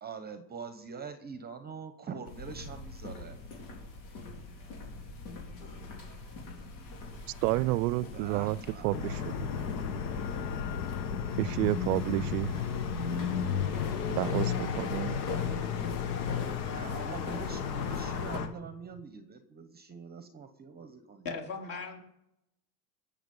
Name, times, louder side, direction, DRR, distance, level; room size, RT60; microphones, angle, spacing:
voice 1, 0.0-3.4 8.1-8.9 16.6-21.2, right 6 dB, 20° right, 10 dB, 0.8 m, -44 dB
sound 1, 2.3-18.4, left 3 dB, 90° left, 4.0 m, -43 dB
voice 2, 7.4-8.6 8.8-9.3 11.4-12.7 14.1-15.2, right 18 dB, 65° right, 21 dB, 0.6 m, -30 dB
sound 2, 8.9-18.5, left 7 dB, 70° left, 1.7 m, -33 dB
voice 3, 21.2-22.0, left 4 dB, 40° left, 1 dB, 3.6 m, -37 dB
20.0 x 7.2 x 5.4 m, 0.85 s
supercardioid pair, 125°, 50 cm